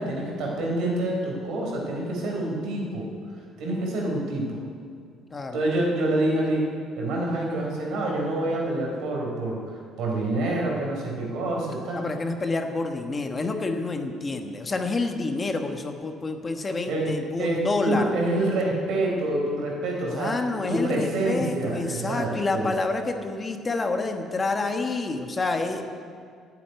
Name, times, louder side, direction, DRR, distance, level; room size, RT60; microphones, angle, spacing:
voice 1, 0.0-3.1 3.6-4.6 5.5-6.7 7.0-9.6 10.0-12.0 16.9-17.1 17.4-22.7, right 1 dB, 75° right, -1 dB, 3.9 m, -27 dB
voice 2, 11.9-18.1 20.0-25.8, left 3 dB, 30° left, 5 dB, 1.2 m, -28 dB
10.5 x 8.4 x 9.4 m, 2.1 s
cardioid pair, 105°, 0 cm